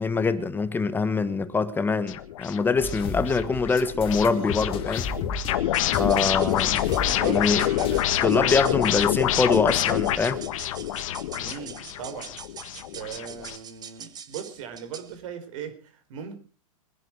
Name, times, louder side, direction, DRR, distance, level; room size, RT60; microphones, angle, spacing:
voice 1, 0.0-5.1 6.0-6.8 7.2-7.6 8.2-10.4, left 4 dB, 10° left, 1.3 m, -24 dB
sound 1, 2.1-13.6, left 12 dB, 65° left, 1.7 m, -27 dB
sound 2, 2.8-8.0, left 4 dB, 30° left, 2.4 m, -34 dB
sound 3, 5.6-15.2, right 7 dB, 20° right, 1.4 m, -44 dB
voice 2, 6.2-8.9 11.3-12.4 12.9-16.4, right 7 dB, 60° right, 4.6 m, -39 dB
23.5 x 10.5 x 4.7 m
hypercardioid pair, 135°, 18 cm